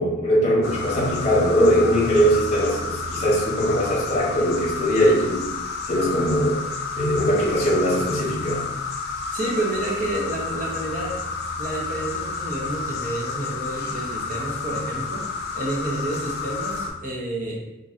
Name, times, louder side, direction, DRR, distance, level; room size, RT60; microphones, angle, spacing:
voice 1, 0.0-5.5 5.9-6.6 7.0-8.6, equal, 35° left, -6 dB, 0.8 m, -21 dB
sound 1, 0.6-16.9, left 4 dB, 50° left, 0.3 m, -30 dB
voice 2, 9.3-11.2 11.6-15.3 15.5-17.6, right 2 dB, 40° right, -3 dB, 0.6 m, -29 dB
3.0 x 2.6 x 2.4 m, 0.97 s
head